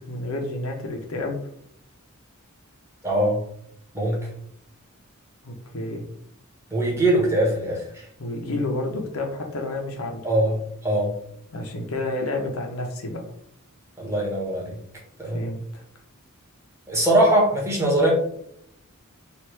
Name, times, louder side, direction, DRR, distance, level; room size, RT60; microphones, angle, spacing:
voice 1, 0.1-1.4 5.4-6.0 8.2-10.2 11.5-13.2 15.3-15.8, left 2 dB, 70° left, 3 dB, 0.7 m, -30 dB
voice 2, 3.0-3.4 3.9-4.3 6.7-8.0 10.2-10.6 10.8-11.2 14.0-14.8 15.2-15.4 16.9-18.1, right 1 dB, 15° right, -3 dB, 1.1 m, -21 dB
3.3 x 2.5 x 3.1 m, 0.69 s
head